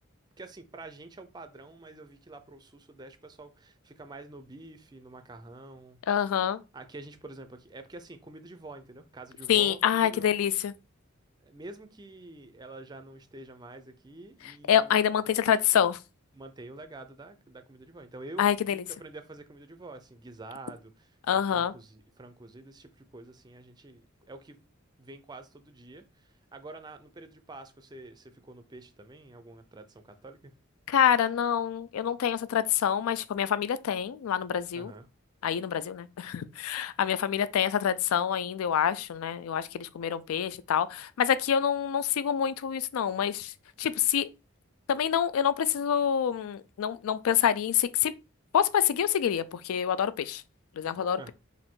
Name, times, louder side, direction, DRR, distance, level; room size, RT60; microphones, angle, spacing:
voice 1, 0.4-6.0 6.7-10.4 11.4-15.0 16.3-24.6 25.0-30.5 34.7-35.1 51.2-51.3, right 2 dB, 20° right, 0.4 m, -47 dB
voice 2, 6.1-6.6 9.5-10.7 14.7-16.0 18.4-18.8 21.3-21.7 30.9-34.9 35.4-43.5 43.8-44.3 44.9-48.1 48.5-50.4 50.8-51.3, left 9 dB, 80° left, 0.3 m, -26 dB
4.9 x 2.6 x 3.6 m
head